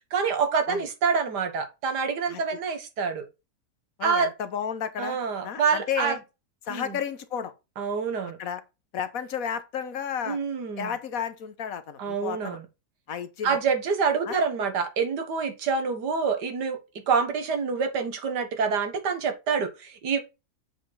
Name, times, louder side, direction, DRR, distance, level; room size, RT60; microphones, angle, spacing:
voice 1, 0.1-3.3 4.0-4.3 5.0-6.2 6.7-7.0 7.8-8.4 10.3-10.9 12.0-12.7 13.4-16.8 17.1-20.2, right 5 dB, 90° right, 2.0 m, -26 dB
voice 2, 2.3-2.6 4.0-5.2 5.4-6.2 6.6-7.5 8.4-8.6 8.9-10.4 10.8-12.6 13.1-13.6 14.2-14.4, left 8 dB, 60° left, 1.2 m, -32 dB
7.7 x 5.1 x 4.0 m
omnidirectional pair, 1.7 m